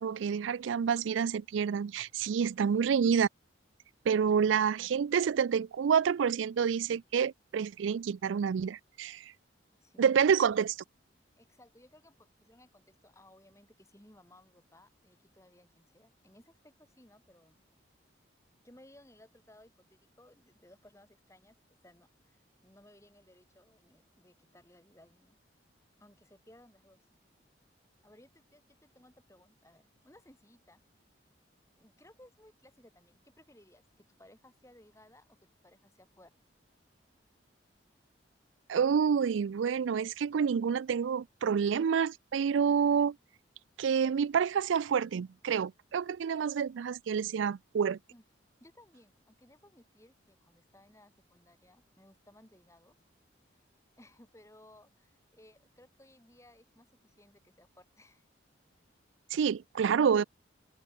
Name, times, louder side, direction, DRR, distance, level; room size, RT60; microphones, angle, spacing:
voice 1, 0.0-3.3 4.1-9.2 10.0-10.7 38.7-43.2 43.8-48.0 59.3-60.2, right 7 dB, 80° right, 0.4 m, -28 dB
voice 2, 2.7-3.1 9.8-10.6 11.4-17.6 18.6-21.6 21.8-25.4 26.0-27.0 28.0-30.8 31.8-36.4 48.1-48.2 48.6-53.0 54.0-58.3, left 1 dB, 15° left, 4.0 m, -60 dB
open air
head